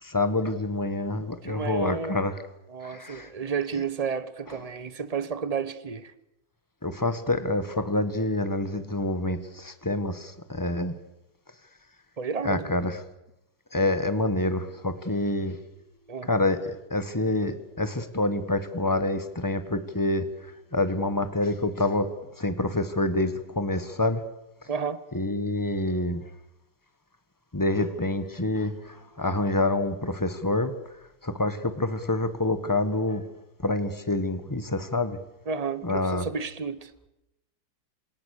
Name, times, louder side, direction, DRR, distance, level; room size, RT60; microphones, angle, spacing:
voice 1, 0.0-2.3 2.8-3.3 6.8-10.9 12.4-13.0 13.7-15.6 16.2-22.1 22.4-24.2 25.1-26.2 27.5-30.7 31.2-33.2 33.6-35.2 35.8-36.3, left 2 dB, 10° left, 1.4 m, -27 dB
voice 2, 1.4-2.2 2.7-6.1 12.2-12.7 16.1-16.3 24.7-25.0 35.5-36.9, right 6 dB, 35° right, 0.5 m, -31 dB
29.0 x 27.0 x 6.8 m
omnidirectional pair, 2.4 m